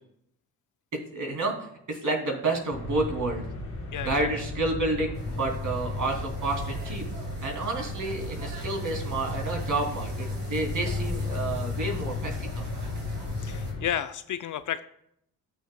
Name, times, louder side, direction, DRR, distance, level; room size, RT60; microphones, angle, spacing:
voice 1, 0.9-3.4 4.0-7.0 7.4-12.7, right 2 dB, 50° right, 1 dB, 2.8 m, -30 dB
sound 1, 2.7-13.8, left 2 dB, 70° left, 2.9 m, -34 dB
voice 2, 3.9-4.3 13.4-14.8, left 9 dB, 50° left, 12 dB, 0.5 m, -32 dB
sound 2, 5.1-13.7, right 1 dB, 75° right, 3.3 m, -45 dB
14.0 x 6.6 x 2.3 m, 0.74 s
hypercardioid pair, 40°, 41 cm